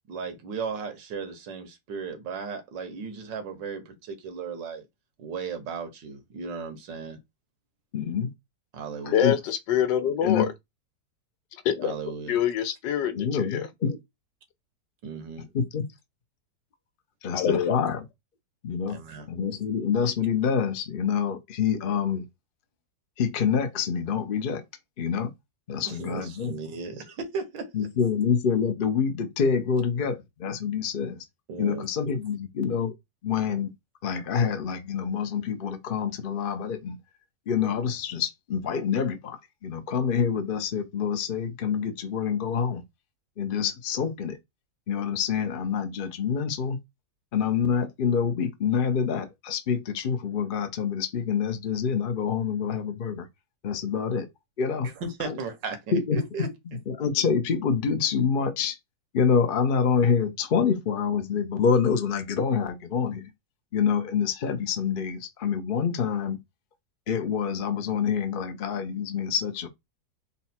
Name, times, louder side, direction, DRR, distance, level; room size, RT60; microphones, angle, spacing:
voice 1, 0.1-4.8 5.2-7.2 8.7-9.3 11.8-12.4 15.0-15.5 18.9-19.3 25.8-27.7 31.5-31.9 55.0-56.8, right 5 dB, 85° right, 1.8 m, -36 dB
voice 2, 7.9-8.3 9.0-9.4 10.2-10.5 13.2-14.0 15.5-15.9 17.2-18.0 18.6-19.0 19.3-22.2 23.2-24.6 25.0-25.3 25.7-26.5 27.7-31.2 31.6-32.9 33.2-33.7 34.0-37.0 37.5-42.8 43.4-44.4 44.9-46.8 47.3-53.3 53.6-54.3 54.6-54.9 55.2-55.4 55.9-56.5 56.9-58.8 59.1-63.3 63.7-66.4 67.1-69.7, left 6 dB, 50° left, 0.6 m, -26 dB
voice 3, 9.1-10.5 11.6-12.0 12.3-13.7 17.3-17.8, left 9 dB, 85° left, 1.3 m, -25 dB
4.0 x 2.3 x 4.2 m
omnidirectional pair, 1.9 m